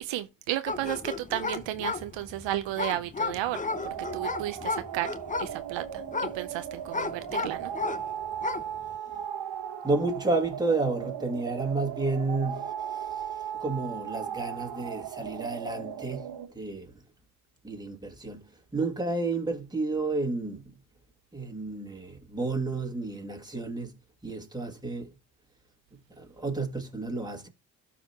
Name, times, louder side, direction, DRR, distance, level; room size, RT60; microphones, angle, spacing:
voice 1, 0.0-3.6 4.1-5.1 5.4-6.0 6.3-7.7, right 14 dB, 70° right, 0.7 m, -33 dB
sound 1, 0.7-8.1 8.3-8.8, left 4 dB, 15° left, 0.6 m, -33 dB
sound 2, 3.7-16.5, right 9 dB, 55° right, 1.2 m, -37 dB
voice 2, 9.8-17.0 17.6-20.8 21.3-24.0 24.2-25.1 25.9-27.5, right 3 dB, 10° right, 2.1 m, -31 dB
12.5 x 4.2 x 2.8 m
supercardioid pair, 55°, 46 cm